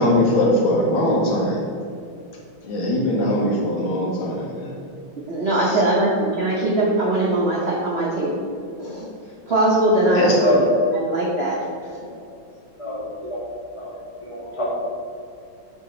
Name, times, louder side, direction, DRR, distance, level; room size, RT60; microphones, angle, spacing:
voice 1, 0.0-1.6 2.7-4.7 5.7-5.8 10.2-10.4, left 1 dB, 75° left, -2 dB, 1.9 m, -21 dB
voice 2, 5.3-8.4 8.8-9.1 9.5-10.6 11.0-11.5, right 1 dB, 60° right, -5 dB, 0.6 m, -20 dB
voice 3, 12.8-13.5 13.7-13.9 14.2-14.7, left 1 dB, 15° left, -7 dB, 1.4 m, -26 dB
8.6 x 3.5 x 3.9 m, 2.5 s
omnidirectional pair, 2.3 m